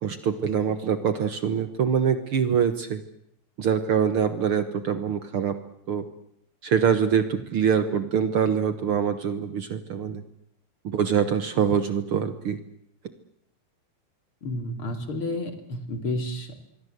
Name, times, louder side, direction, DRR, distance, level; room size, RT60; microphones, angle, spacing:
voice 1, 0.0-3.0 3.6-5.6 5.9-6.0 6.6-10.2 10.8-12.6, right 7 dB, 55° right, 11 dB, 1.9 m, -24 dB
voice 2, 14.4-16.6, left 1 dB, 45° left, 8 dB, 3.7 m, -31 dB
26.0 x 23.0 x 8.0 m, 0.75 s
omnidirectional pair, 3.3 m